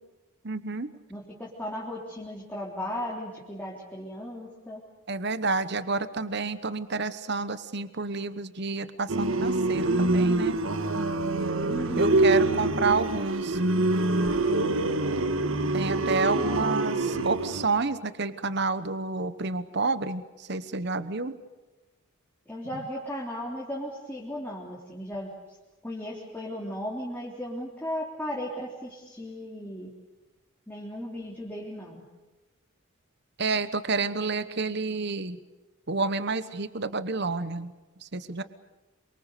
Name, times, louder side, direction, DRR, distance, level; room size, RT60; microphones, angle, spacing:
voice 1, 0.4-0.9 5.1-10.6 12.0-13.6 15.7-21.3 33.4-35.4 35.9-37.7 38.0-38.4, right 4 dB, 55° right, 13 dB, 1.1 m, -29 dB
voice 2, 1.1-4.8 11.7-12.3 16.3-16.8 22.5-25.3 25.8-29.9 30.7-32.0, equal, 10° left, -4 dB, 3.5 m, -36 dB
sound 1, 9.1-17.6, right 2 dB, 70° right, 1.5 m, -25 dB
28.0 x 24.5 x 6.8 m, 1.2 s
head